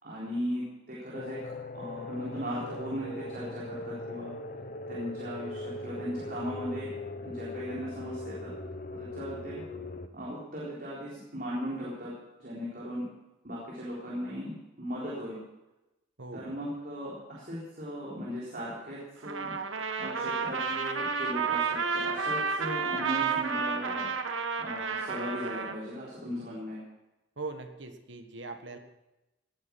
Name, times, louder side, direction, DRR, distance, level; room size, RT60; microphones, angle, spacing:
voice 1, 0.0-1.4 1.7-4.3 4.9-6.9 7.2-8.5 8.9-9.6 10.1-12.1 12.4-13.0 13.4-15.4 16.3-19.5 20.0-24.1 24.6-26.8, equal, 45° right, -6 dB, 3.9 m, -37 dB
sound 1, 1.1-10.1, left 2 dB, 45° left, 1.0 m, -40 dB
voice 2, 16.2-16.5 27.4-28.8, right 3 dB, 70° right, 6 dB, 1.6 m, -40 dB
Trumpet, 19.2-25.8, right 5 dB, 85° right, 1.3 m, -31 dB
17.5 x 10.0 x 6.0 m, 0.98 s
head